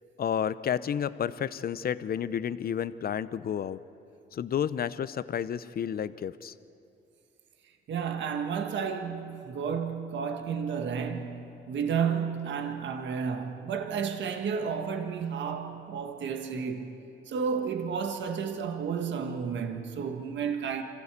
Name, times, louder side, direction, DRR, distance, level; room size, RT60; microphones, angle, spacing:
voice 1, 0.2-3.8 4.3-6.5, left 8 dB, 50° left, 0.7 m, -31 dB
voice 2, 7.9-16.9 17.3-20.8, right 6 dB, 65° right, 1.7 m, -32 dB
25.5 x 15.0 x 8.3 m
cardioid pair, 90°, 20 cm